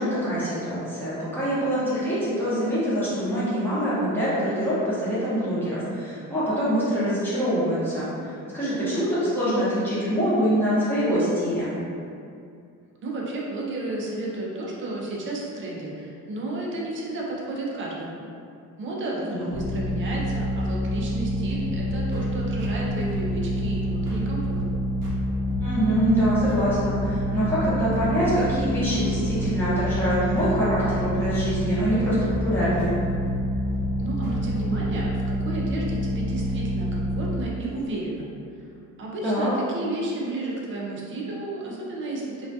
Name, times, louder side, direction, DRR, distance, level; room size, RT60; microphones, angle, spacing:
voice 1, 0.0-11.7 19.1-19.5 25.6-32.9 39.2-39.5, equal, 5° left, -11 dB, 0.7 m, -25 dB
voice 2, 13.0-18.2 18.8-24.6 34.0-38.3 39.0-42.5, right 2 dB, 35° right, -3 dB, 0.4 m, -32 dB
sound 1, 19.5-37.4, equal, 15° right, 1.1 m, -27 dB
sound 2, 21.6-35.0, left 1 dB, 90° right, 0.6 m, -38 dB
2.2 x 2.2 x 2.6 m, 2.4 s
cardioid pair, 155°, 34 cm